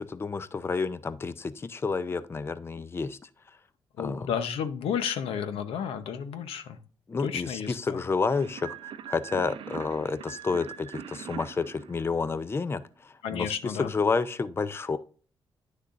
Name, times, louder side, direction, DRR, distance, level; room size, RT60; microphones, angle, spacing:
voice 1, 0.0-3.2 4.0-4.3 7.1-15.0, left 4 dB, 25° left, 0.5 m, -30 dB
voice 2, 4.0-6.8 7.2-8.0 13.2-13.9, left 8 dB, 85° left, 0.8 m, -32 dB
sound 1, 8.3-12.7, right 9 dB, 70° right, 0.6 m, -42 dB
9.8 x 6.5 x 2.5 m
cardioid pair, 85°, 9 cm